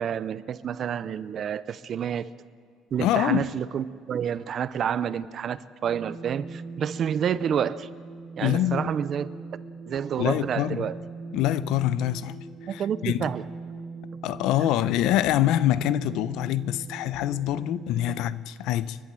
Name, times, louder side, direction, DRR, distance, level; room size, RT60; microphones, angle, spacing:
voice 1, 0.0-2.3 2.9-7.9 8.4-9.3 9.9-11.0 12.7-13.4 14.6-14.7, right 8 dB, 40° right, 16 dB, 0.6 m, -29 dB
voice 2, 3.0-3.5 8.4-8.9 10.2-10.9 11.3-13.3 14.2-19.0, left 13 dB, 75° left, 16 dB, 0.6 m, -25 dB
sound 1, 5.8-18.2, right 4 dB, 20° right, 2.3 m, -41 dB
30.0 x 11.5 x 7.6 m, 2.1 s
cardioid pair, 145°, 0 cm